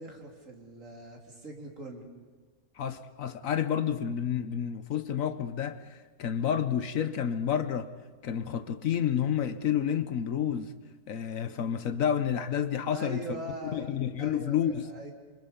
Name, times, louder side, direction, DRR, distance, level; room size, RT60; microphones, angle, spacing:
voice 1, 0.0-2.0 12.9-13.9 14.2-15.1, right 1 dB, 55° right, 3.7 m, -41 dB
voice 2, 2.8-7.9 8.2-10.7 11.1-13.4 13.7-14.9, left 9 dB, 65° left, 1.2 m, -30 dB
27.5 x 25.5 x 5.2 m
omnidirectional pair, 1.6 m